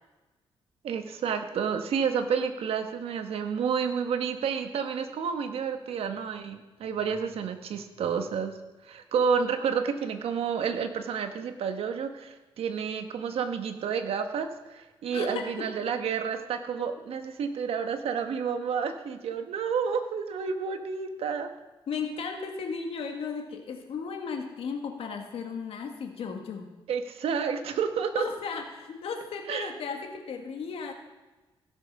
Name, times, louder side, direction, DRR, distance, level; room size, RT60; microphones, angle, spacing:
voice 1, 0.8-8.5 8.8-21.5 26.9-28.2 29.5-29.7, right 6 dB, 85° right, 7 dB, 1.2 m, -30 dB
voice 2, 15.1-15.7 21.9-26.7 28.2-30.9, left 5 dB, 75° left, 4 dB, 1.6 m, -35 dB
16.5 x 7.5 x 5.4 m, 1.1 s
cardioid pair, 120°, 10 cm